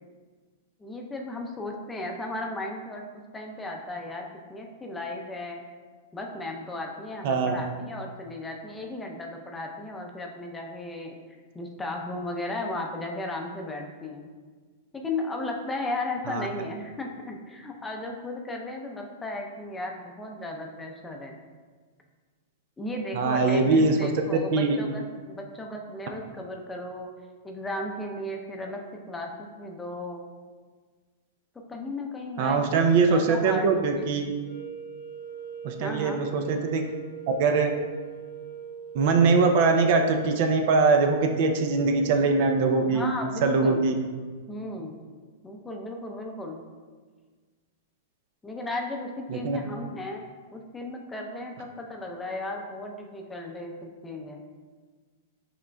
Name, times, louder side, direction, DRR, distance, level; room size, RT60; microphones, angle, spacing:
voice 1, 0.8-5.6 6.1-11.2 11.5-14.3 14.9-21.4 22.8-27.1 27.4-30.2 31.7-34.1 35.8-36.2 42.8-43.8 44.5-45.0 45.4-46.6 48.4-50.2 50.5-54.4, left 2 dB, 10° left, 1 dB, 0.6 m, -35 dB
voice 2, 7.2-7.5 16.3-16.5 23.1-24.1 24.5-24.8 32.4-34.2 35.6-36.8 37.3-37.7 38.9-43.1 43.4-43.9 49.3-49.6, right 4 dB, 55° right, 5 dB, 0.5 m, -22 dB
sound 1, 34.4-42.6, right 9 dB, 50° left, 0.8 m, -41 dB
5.8 x 3.7 x 2.2 m, 1.5 s
hypercardioid pair, 120°, 0 cm